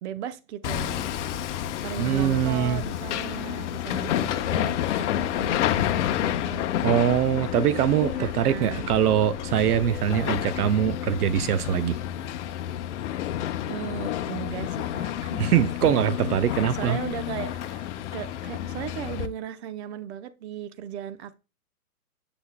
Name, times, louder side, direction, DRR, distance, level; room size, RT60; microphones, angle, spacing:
voice 1, 0.0-1.1 1.8-6.7 8.1-8.9 13.7-15.4 16.7-17.8 18.1-21.4, right 10 dB, 45° right, 0.8 m, -37 dB
Hammer, 0.6-19.3, left 11 dB, 50° left, 0.7 m, -29 dB
voice 2, 2.0-2.8 6.8-12.0 15.4-17.0, right 10 dB, 80° right, 0.6 m, -23 dB
7.2 x 6.9 x 2.2 m
hypercardioid pair, 125°, 44 cm